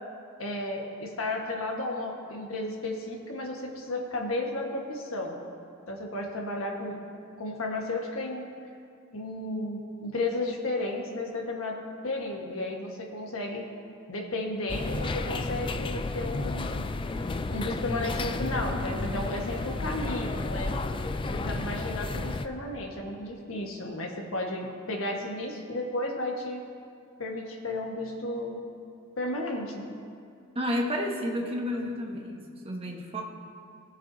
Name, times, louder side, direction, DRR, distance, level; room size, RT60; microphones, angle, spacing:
voice 1, 0.4-5.4 5.9-7.0 7.4-8.4 9.1-13.6 14.1-16.9 17.5-20.7 21.3-26.6 27.2-28.6 29.2-29.9 31.7-31.9, left 2 dB, 75° left, 1 dB, 1.4 m, -33 dB
sound 1, 14.7-22.5, left 3 dB, 25° left, 0.4 m, -32 dB
voice 2, 30.5-33.2, equal, 30° right, -1 dB, 1.2 m, -31 dB
19.5 x 8.2 x 2.7 m, 2.3 s
head